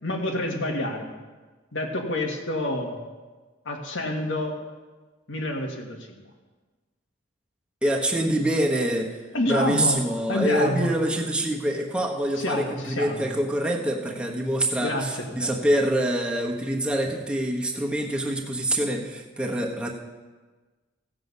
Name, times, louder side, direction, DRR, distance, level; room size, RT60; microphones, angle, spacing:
voice 1, 0.0-1.1 1.7-3.1 3.6-4.5 5.3-6.2 9.3-10.9 12.4-13.3 14.8-15.5, left 1 dB, 75° left, 2 dB, 1.7 m, -28 dB
voice 2, 7.8-9.1 9.5-19.9, right 1 dB, 5° right, -1 dB, 1.2 m, -25 dB
15.5 x 7.8 x 5.4 m, 1.3 s
head